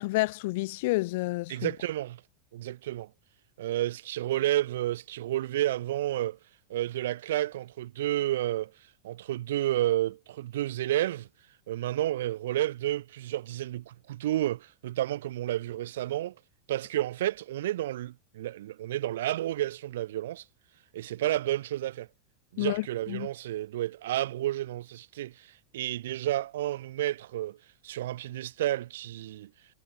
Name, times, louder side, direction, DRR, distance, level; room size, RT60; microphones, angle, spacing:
voice 1, 0.0-1.7 22.6-23.3, left 21 dB, 60° left, 3.4 m, -30 dB
voice 2, 1.5-2.2 2.5-3.1 3.6-6.4 6.7-8.7 9.0-11.3 11.7-16.3 16.7-20.4 20.9-22.1 22.5-27.6 27.8-29.5, right 14 dB, 80° right, 3.3 m, -31 dB
supercardioid pair, 155°, 0 cm